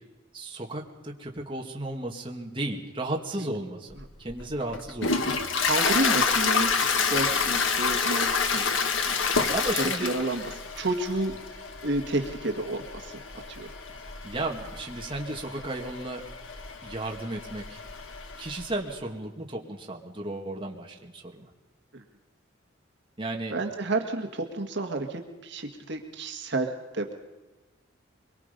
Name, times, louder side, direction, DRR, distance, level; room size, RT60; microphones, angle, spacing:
voice 1, 0.3-5.4 9.5-10.1 14.2-16.2 16.8-17.8 18.4-21.5 23.2-23.6, right 2 dB, 25° right, 0 dB, 2.2 m, -34 dB
Toilet flush, 4.0-18.7, left 5 dB, 75° left, 1.6 m, -29 dB
voice 2, 5.5-8.7 9.1-9.2 9.5-10.4 10.7-11.4 11.8-13.7 21.9-22.0 23.5-27.1, right 2 dB, 60° right, 4 dB, 1.8 m, -31 dB
24.0 x 23.5 x 5.3 m, 1.1 s
head